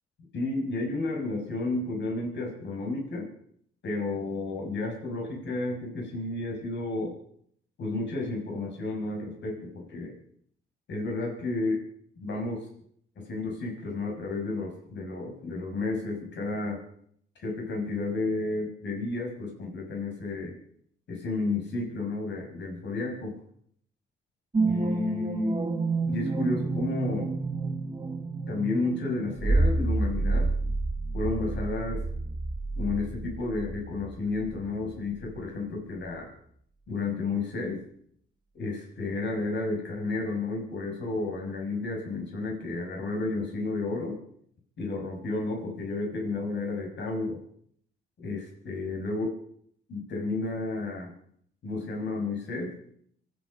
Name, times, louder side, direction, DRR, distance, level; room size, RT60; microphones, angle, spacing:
voice 1, 0.3-3.3 3.8-7.2 7.8-10.2 10.9-11.8 12.2-12.7 13.3-16.8 17.4-20.5 21.1-23.3 24.6-25.5 26.1-27.3 28.5-30.5 31.1-32.0 32.7-36.3 36.9-37.8 38.5-44.1 44.8-47.4 48.2-49.3 49.9-51.1 51.6-52.7, left 3 dB, 65° left, 1 dB, 5.9 m, -32 dB
sound 1, 24.5-35.0 35.4-35.5, right 3 dB, 25° right, 1.3 m, -29 dB
25.5 x 10.0 x 5.2 m, 0.65 s
cardioid pair, 90°, 20 cm